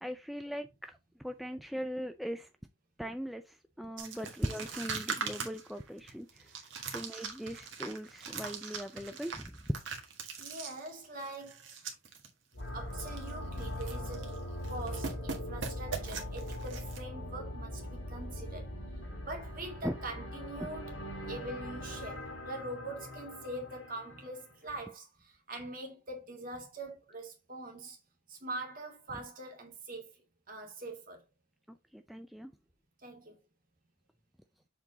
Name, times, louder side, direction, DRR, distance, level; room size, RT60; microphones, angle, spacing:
voice 1, 0.0-0.9 1.2-2.5 3.0-6.5 6.9-9.6 19.8-20.0 20.6-20.7 31.7-32.5, equal, ahead, 0.3 m, -40 dB
sound 1, 4.0-12.3 12.6-12.7 13.0-13.3 13.6-14.4 14.6-17.0, right 5 dB, 80° right, 1.6 m, -41 dB
voice 2, 10.4-11.6 12.7-14.4 14.7-18.6 19.2-20.9 21.3-28.0 28.3-30.1 30.5-31.2 33.0-33.4, right 2 dB, 45° right, 2.0 m, -43 dB
sound 2, 12.5-24.5, left 1 dB, 70° left, 2.5 m, -41 dB
7.3 x 3.8 x 3.9 m
head